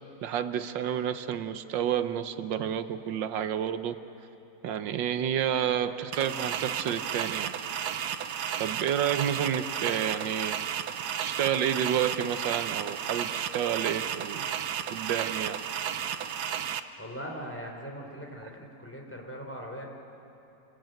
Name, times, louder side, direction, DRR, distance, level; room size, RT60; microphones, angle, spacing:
voice 1, 0.2-4.0 4.6-7.5 8.6-10.6 11.2-14.5 14.9-15.6, right 9 dB, 90° right, 10 dB, 1.6 m, -30 dB
sound 1, 6.1-16.8, right 9 dB, 65° right, 1.3 m, -33 dB
voice 2, 17.0-19.8, equal, 5° left, 0 dB, 3.7 m, -40 dB
28.5 x 22.5 x 9.1 m, 2.9 s
omnidirectional pair, 1.9 m